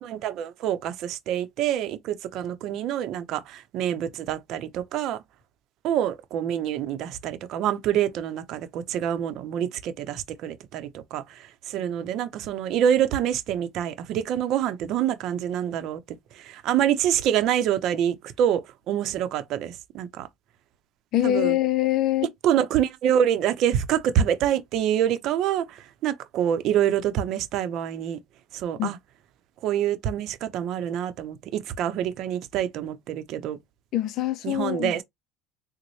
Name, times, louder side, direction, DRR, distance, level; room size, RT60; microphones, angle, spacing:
voice 1, 0.0-5.2 5.8-11.2 11.7-16.0 16.4-20.3 21.2-21.6 22.4-28.2 28.5-29.0 29.6-33.6 34.4-35.0, right 10 dB, 55° right, 0.7 m, -26 dB
voice 2, 21.1-22.3 28.8-28.9 33.9-35.0, left 13 dB, 55° left, 0.5 m, -24 dB
3.9 x 2.1 x 3.1 m
supercardioid pair, 115°, 0 cm